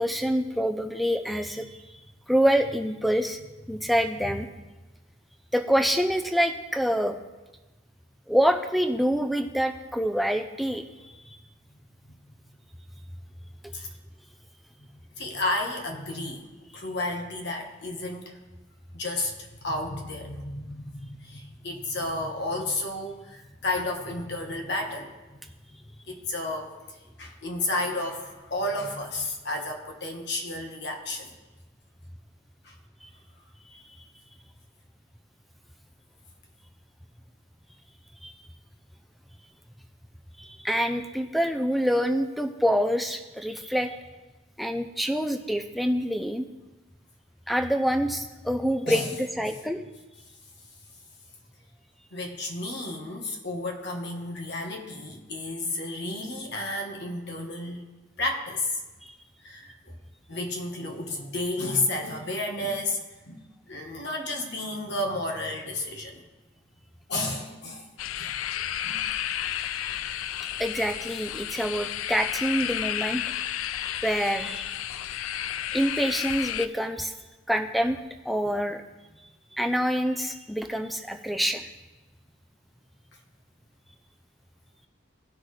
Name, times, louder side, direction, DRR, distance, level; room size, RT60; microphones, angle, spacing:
voice 1, 0.0-1.8 2.3-3.4 3.7-4.5 5.5-7.2 8.3-10.8 13.6-13.7 33.0-33.1 33.7-34.0 38.2-38.3 40.4-44.0 44.6-46.5 47.5-49.8 59.0-59.1 69.6-69.8 70.4-73.2 74.0-74.6 75.7-77.1 77.5-78.0 78.2-78.8 79.6-81.7, equal, ahead, 5 dB, 0.4 m, -26 dB
voice 2, 15.2-16.5 16.7-18.4 18.9-25.8 26.1-31.4 32.6-32.8 48.8-49.1 49.5-49.6 52.1-57.9 58.2-58.8 59.4-60.0 60.3-66.2 67.1-67.9 68.2-68.3 68.8-69.0, left 2 dB, 55° left, 2 dB, 1.3 m, -32 dB
sound 1, 68.0-76.7, left 11 dB, 80° left, 0.4 m, -32 dB
17.5 x 6.1 x 3.2 m, 1.1 s
head